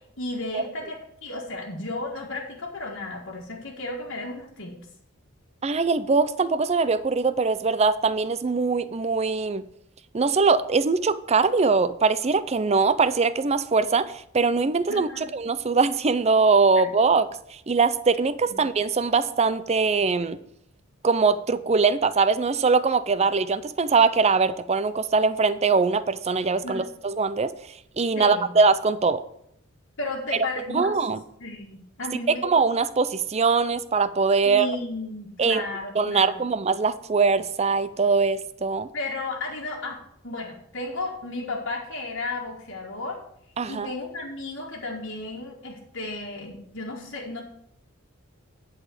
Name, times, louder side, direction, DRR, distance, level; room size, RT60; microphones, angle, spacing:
voice 1, 0.2-4.9 14.9-15.3 18.5-18.6 26.6-26.9 28.1-28.5 30.0-31.0 31.4-32.5 34.4-36.4 38.9-43.2 43.7-47.4, left 2 dB, 60° left, -4 dB, 1.7 m, -34 dB
voice 2, 5.6-9.6 10.1-20.4 21.0-27.5 28.0-29.2 30.7-31.2 32.4-34.7 35.4-35.6 35.9-38.9 43.6-43.9, right 4 dB, 30° right, 13 dB, 0.5 m, -22 dB
10.5 x 4.2 x 7.7 m, 0.73 s
head